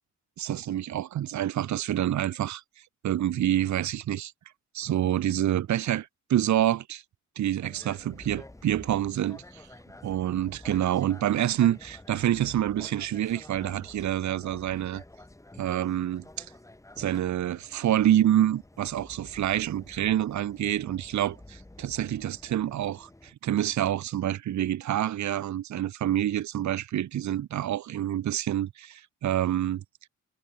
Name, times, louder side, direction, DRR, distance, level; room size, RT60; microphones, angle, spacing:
voice 1, 0.4-2.6 3.0-4.3 4.7-7.0 7.4-9.7 10.0-15.0 15.6-16.5 17.0-29.8, right 11 dB, 70° right, 0.6 m, -27 dB
sound 1, 7.6-23.3, left 1 dB, 10° left, 1.8 m, -50 dB
wide cardioid pair, 130°, 30 cm